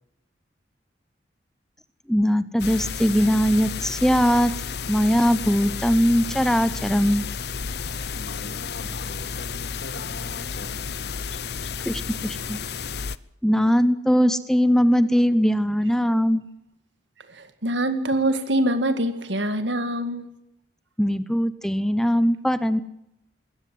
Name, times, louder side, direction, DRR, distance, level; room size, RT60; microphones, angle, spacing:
voice 1, 2.1-4.5 4.9-7.3 11.9-12.6 13.4-16.5 21.0-22.8, equal, 5° left, 0.8 m, -20 dB
sound 1, 2.6-13.2, left 6 dB, 60° left, 0.7 m, -32 dB
voice 2, 8.1-11.7, left 2 dB, 85° left, 2.7 m, -41 dB
voice 3, 17.2-20.3, right 1 dB, 80° right, 2.1 m, -24 dB
21.0 x 17.0 x 7.8 m
head